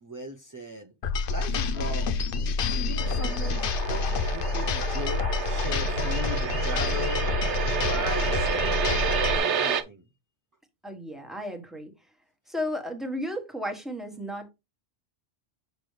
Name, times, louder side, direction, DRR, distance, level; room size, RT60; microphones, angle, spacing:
voice 1, 0.0-0.9 1.3-2.2 2.7-7.3 7.8-9.1 9.3-10.0, equal, 25° right, 0.5 m, -38 dB
sound 1, 1.0-9.4, left 4 dB, 55° left, 0.8 m, -28 dB
sound 2, 3.0-9.8, right 6 dB, 70° right, 1.1 m, -30 dB
voice 2, 10.8-11.9 12.5-14.5, equal, ahead, 1.3 m, -33 dB
6.6 x 6.0 x 3.2 m
omnidirectional pair, 1.2 m